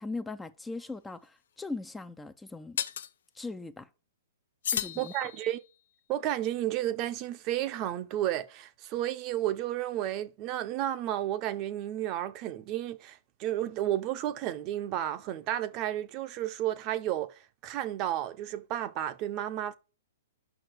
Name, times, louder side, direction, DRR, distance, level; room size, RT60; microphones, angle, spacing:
voice 1, 0.0-2.8 3.3-3.9 4.7-5.3, left 3 dB, 10° left, 0.5 m, -39 dB
sound 1, 0.8-0.9 2.8-3.1 4.6-5.7, left 8 dB, 70° left, 0.5 m, -34 dB
voice 2, 5.0-5.6 6.1-19.7, right 13 dB, 35° right, 0.7 m, -32 dB
5.8 x 4.9 x 6.3 m
hypercardioid pair, 130°, 0 cm